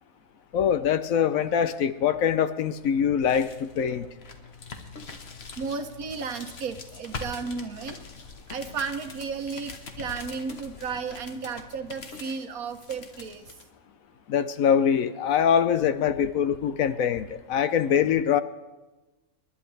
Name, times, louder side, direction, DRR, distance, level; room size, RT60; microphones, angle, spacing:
voice 1, 0.5-4.1 14.3-18.4, left 8 dB, 70° left, 12 dB, 1.0 m, -23 dB
sound 1, 2.8-13.6, left 4 dB, 45° left, 1.3 m, -43 dB
voice 2, 5.6-8.0 8.5-9.7 10.0-13.5, right 5 dB, 70° right, 8 dB, 1.4 m, -33 dB
27.5 x 11.0 x 3.3 m, 1.1 s
omnidirectional pair, 1.6 m